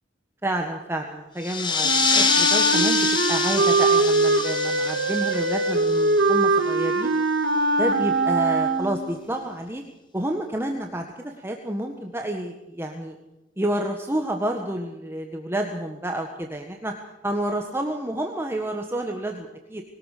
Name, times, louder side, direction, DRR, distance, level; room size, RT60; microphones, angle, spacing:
voice 1, 0.4-7.1 7.8-9.8 10.1-13.2 13.6-16.9 17.2-19.8, right 1 dB, 15° right, 3 dB, 1.5 m, -29 dB
sound 1, 1.4-6.6, left 5 dB, 25° left, 1.7 m, -25 dB
Wind instrument woodwind instrument, 1.8-9.2, right 2 dB, 85° right, 1.9 m, -22 dB
21.5 x 18.5 x 6.7 m, 0.96 s
head